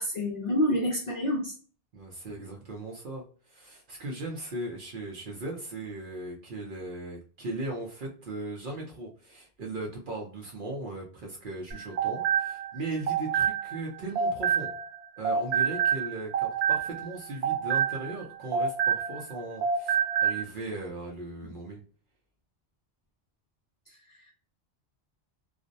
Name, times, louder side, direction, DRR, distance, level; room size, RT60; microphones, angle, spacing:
voice 1, 0.0-1.5 21.4-21.5 24.1-24.3, equal, 50° left, -2 dB, 0.6 m, -28 dB
voice 2, 1.9-14.7 15.2-21.8, right 2 dB, 55° right, -1 dB, 0.7 m, -38 dB
sound 1, 11.7-15.0 15.2-19.3 19.6-20.4, right 8 dB, 90° right, 0.9 m, -27 dB
2.4 x 2.0 x 2.5 m, 0.41 s
omnidirectional pair, 1.1 m